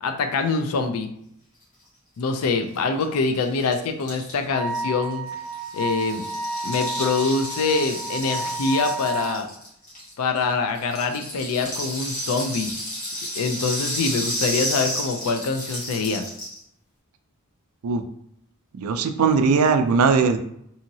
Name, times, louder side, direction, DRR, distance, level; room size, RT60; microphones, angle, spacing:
voice 1, 0.0-1.1 2.2-5.2 5.7-6.2 6.6-9.5 10.2-12.7 13.4-16.2, left 4 dB, 85° left, 6 dB, 0.4 m, -24 dB
Rattle (instrument), 2.7-2.8 3.0-3.1 3.3-10.4 10.7-16.6, equal, 35° left, 1.1 m, -32 dB
Wind instrument woodwind instrument, 4.5-9.3, right 3 dB, 55° right, 0.7 m, -31 dB
voice 2, 18.8-20.4, right 5 dB, 80° right, 7 dB, 0.4 m, -19 dB
2.8 x 2.7 x 2.7 m, 0.72 s
head